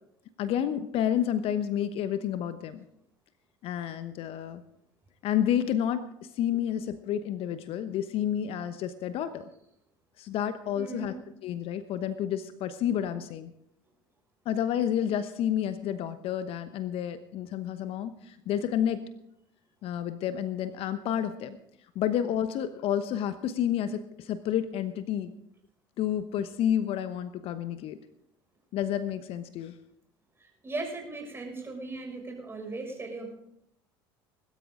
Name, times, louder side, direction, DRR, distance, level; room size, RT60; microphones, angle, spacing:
voice 1, 0.4-2.8 3.6-4.6 5.2-9.5 10.2-11.2 11.4-13.5 14.4-19.0 19.8-21.6 21.9-25.3 26.0-28.0 28.7-29.7, left 10 dB, 50° left, 12 dB, 1.0 m, -30 dB
voice 2, 10.7-11.1 30.4-33.3, right 3 dB, 20° right, 1 dB, 6.5 m, -38 dB
21.0 x 13.0 x 3.8 m, 0.76 s
hypercardioid pair, 65°, 12 cm